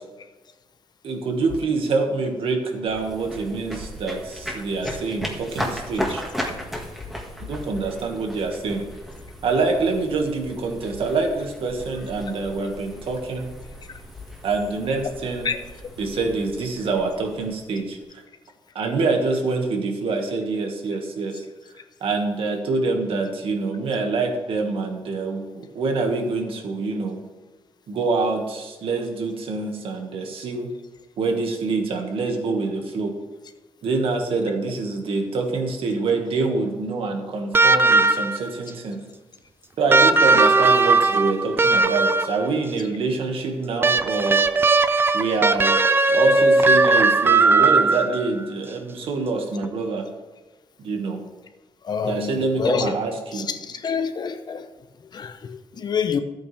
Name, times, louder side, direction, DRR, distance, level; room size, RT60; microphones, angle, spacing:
voice 1, 1.0-6.2 7.4-8.9 9.4-13.5 14.4-15.5 16.0-18.2 18.8-21.4 22.0-27.2 27.9-30.7 31.2-33.1 33.8-39.0 39.8-44.4 45.1-45.8 46.1-50.1 50.8-51.2 52.1-53.5, right 3 dB, 65° right, 3 dB, 1.8 m, -25 dB
sound 1, 2.9-18.0, equal, 5° right, 1.8 m, -36 dB
sound 2, 37.5-38.5 39.9-42.5 43.8-48.3 49.6-49.7, right 3 dB, 25° right, 0.5 m, -18 dB
voice 2, 51.8-52.9 53.3-56.2, left 6 dB, 45° left, 9 dB, 0.7 m, -28 dB
13.5 x 8.6 x 3.4 m, 1.2 s
cardioid pair, 125°, 10 cm